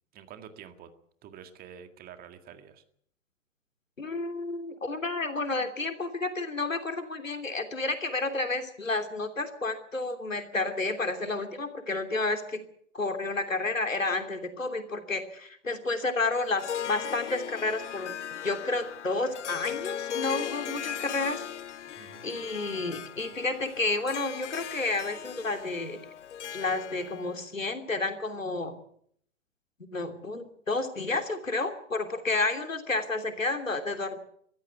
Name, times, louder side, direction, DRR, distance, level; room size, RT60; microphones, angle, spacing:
voice 1, 0.1-0.9 1.2-2.8 21.9-22.3, right 8 dB, 25° right, 8 dB, 2.0 m, -48 dB
voice 2, 4.0-12.6 12.9-18.1 18.4-21.4 22.2-26.0 26.5-28.8 29.9-34.2, left 3 dB, 85° left, 7 dB, 3.1 m, -31 dB
Harp, 16.4-27.4, left 9 dB, 65° left, 0.8 m, -38 dB
23.5 x 14.5 x 8.2 m, 0.66 s
figure-of-eight pair, 110°, 38 cm